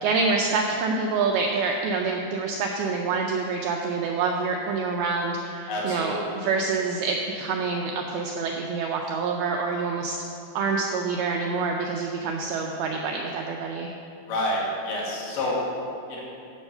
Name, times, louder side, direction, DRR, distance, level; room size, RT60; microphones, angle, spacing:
voice 1, 0.0-10.2 10.5-13.9, right 4 dB, 85° right, 1 dB, 2.2 m, -27 dB
voice 2, 5.7-6.3 14.3-15.6 16.1-16.2, left 1 dB, 80° left, -5 dB, 4.2 m, -28 dB
10.5 x 7.1 x 5.5 m, 2.6 s
omnidirectional pair, 5.1 m